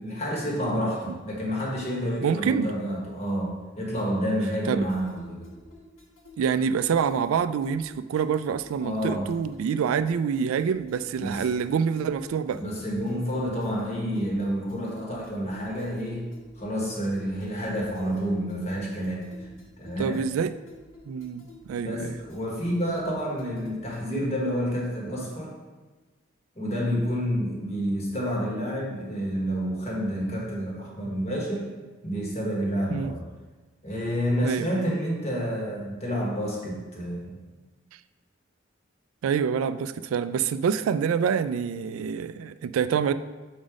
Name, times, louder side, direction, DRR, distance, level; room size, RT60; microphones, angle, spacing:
voice 1, 0.0-5.5 8.8-9.3 11.2-11.4 12.5-20.2 21.7-25.5 26.5-31.7 32.0-33.3 33.8-37.4, equal, 35° left, -3 dB, 1.4 m, -29 dB
voice 2, 2.2-2.7 4.7-4.9 6.4-12.6 20.0-20.5 21.1-22.2 32.9-33.1 34.4-34.8 39.2-43.1, right 7 dB, 90° right, 14 dB, 0.3 m, -26 dB
sound 1, 4.6-24.2, left 1 dB, 80° left, 1.7 m, -51 dB
6.2 x 4.0 x 4.9 m, 1.3 s
head